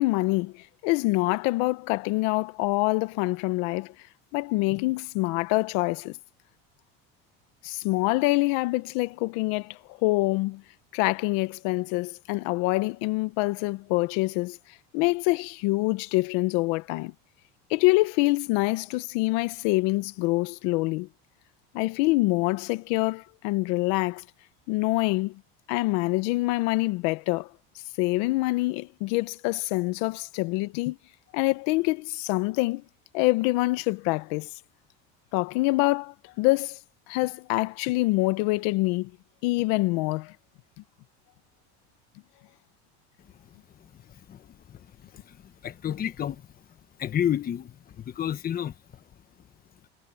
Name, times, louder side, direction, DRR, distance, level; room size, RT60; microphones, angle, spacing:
voice 1, 0.0-3.9 4.3-6.2 7.6-10.6 10.9-14.6 14.9-17.1 17.7-21.1 21.7-24.2 24.7-25.4 25.7-27.5 28.0-31.0 31.3-32.8 33.1-34.5 35.3-36.8 37.1-39.1 39.4-40.3, left 22 dB, 70° left, 1.1 m, -25 dB
voice 2, 43.4-46.6 47.0-49.0, left 10 dB, 30° left, 1.2 m, -32 dB
cardioid pair, 135°, 30 cm